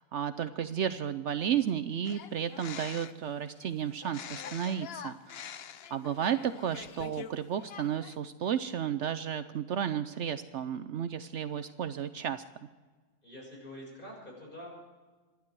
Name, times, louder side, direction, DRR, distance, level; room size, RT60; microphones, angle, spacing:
voice 1, 0.0-5.4 5.9-12.4, right 9 dB, 65° right, 12 dB, 0.9 m, -33 dB
sound 1, 2.0-3.3 4.0-7.3 7.6-8.2, left 8 dB, 55° left, 0.8 m, -45 dB
voice 2, 13.2-14.7, equal, 40° left, -2 dB, 6.7 m, -46 dB
26.0 x 11.5 x 4.7 m, 1.3 s
omnidirectional pair, 1.4 m